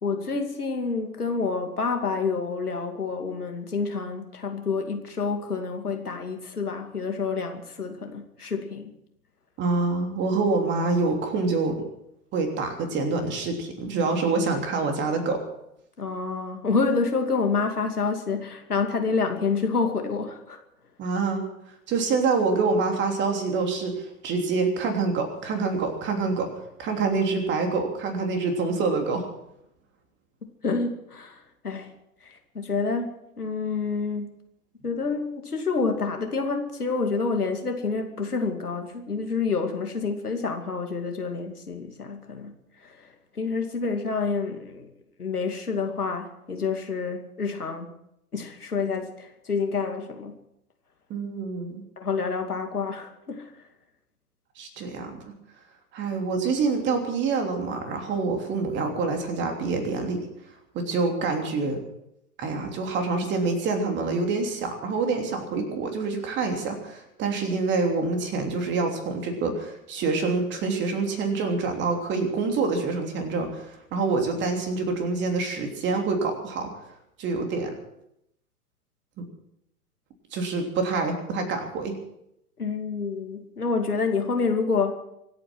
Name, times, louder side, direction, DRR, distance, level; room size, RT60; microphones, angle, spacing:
voice 1, 0.0-8.9 16.0-20.6 30.6-31.9 32.2-34.3 34.8-42.5 42.8-44.9 45.2-47.9 48.3-50.4 52.0-53.5 82.6-84.9, left 4 dB, 75° left, 4 dB, 2.6 m, -28 dB
voice 2, 9.6-11.8 12.3-15.4 21.0-21.4 21.9-26.5 26.8-29.3 51.1-51.8 54.6-55.4 55.9-60.2 60.7-61.8 62.4-76.7 77.2-77.7 80.3-81.9, right 4 dB, 25° right, 4 dB, 3.2 m, -26 dB
25.0 x 9.2 x 6.1 m, 0.80 s
figure-of-eight pair, 110°, 45 cm